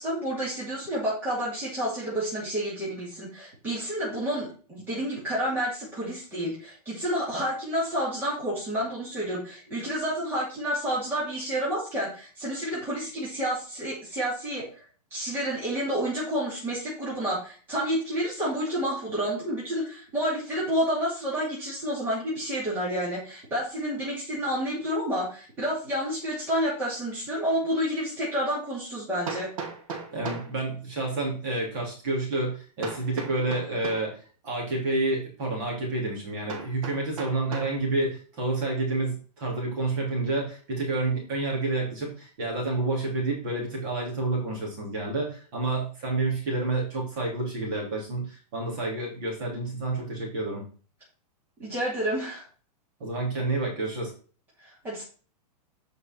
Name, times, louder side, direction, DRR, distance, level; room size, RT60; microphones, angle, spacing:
voice 1, 0.0-14.8 15.1-29.5 51.6-52.4 54.6-55.0, equal, 10° right, -8 dB, 2.6 m, -29 dB
Hammer, 27.7-27.8 29.3-30.5 32.8-34.1 36.5-37.8, right 5 dB, 55° right, 2.4 m, -36 dB
voice 2, 30.1-34.2 34.4-50.6 53.0-54.1, right 2 dB, 30° right, -2 dB, 3.2 m, -29 dB
8.3 x 5.4 x 4.5 m, 0.39 s
supercardioid pair, 180°, 21 cm